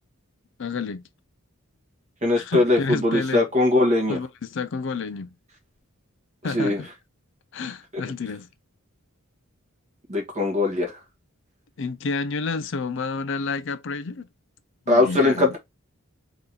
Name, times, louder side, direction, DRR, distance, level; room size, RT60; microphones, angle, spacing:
voice 1, 0.6-1.0 2.4-3.5 4.1-5.3 6.4-6.9 7.5-8.5 11.8-14.3 14.9-15.6, left 4 dB, 55° left, 0.4 m, -30 dB
voice 2, 2.2-4.2 6.5-6.8 10.1-10.9 14.9-15.6, left 2 dB, 30° right, 1.5 m, -20 dB
3.8 x 2.9 x 3.9 m
head